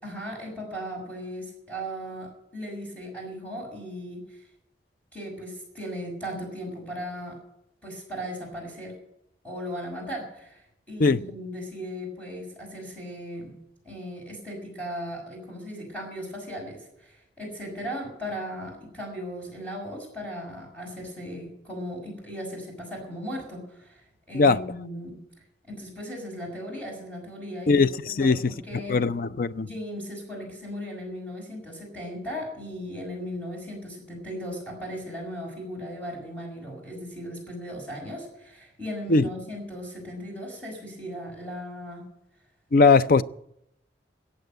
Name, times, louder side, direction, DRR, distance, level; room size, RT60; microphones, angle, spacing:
voice 1, 0.0-4.5 5.1-7.4 7.8-8.9 9.4-13.6 13.8-25.2 25.7-29.0 29.6-42.0, equal, 10° left, 6.2 m, -37 dB
voice 2, 27.7-28.4 28.9-29.7 39.1-39.2 42.7-43.2, left 4 dB, 50° left, 0.5 m, -19 dB
15.0 x 8.7 x 9.1 m
head